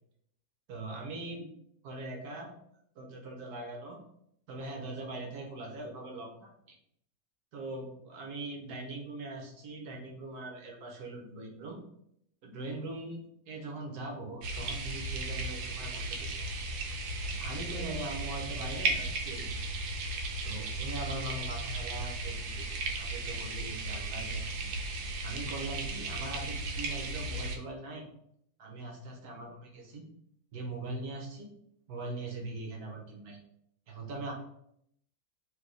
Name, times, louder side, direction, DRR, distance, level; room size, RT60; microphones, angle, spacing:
voice 1, 0.7-1.5 1.8-2.5 2.9-4.0 4.5-6.5 7.5-11.8 12.4-13.2 13.5-16.4 17.3-19.6 20.4-24.7 25.2-28.1 28.6-30.0 30.5-31.5 31.9-33.4 33.9-34.3, right 2 dB, 60° right, 0 dB, 1.2 m, -41 dB
sound 1, 14.4-27.6, right 2 dB, 85° right, 1.5 m, -35 dB
3.4 x 3.1 x 3.8 m, 0.71 s
omnidirectional pair, 2.2 m